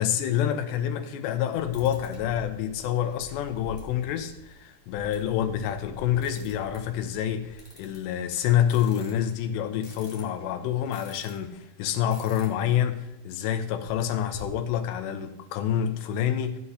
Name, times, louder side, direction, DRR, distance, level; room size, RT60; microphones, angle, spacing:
voice 1, 0.0-16.6, left 10 dB, 85° left, 3.1 m, -27 dB
sound 1, 1.7-11.5 12.0-12.7 13.0-13.1 13.3-14.5, left 2 dB, 5° left, 3.4 m, -47 dB
15.5 x 9.8 x 2.8 m
omnidirectional pair, 4.9 m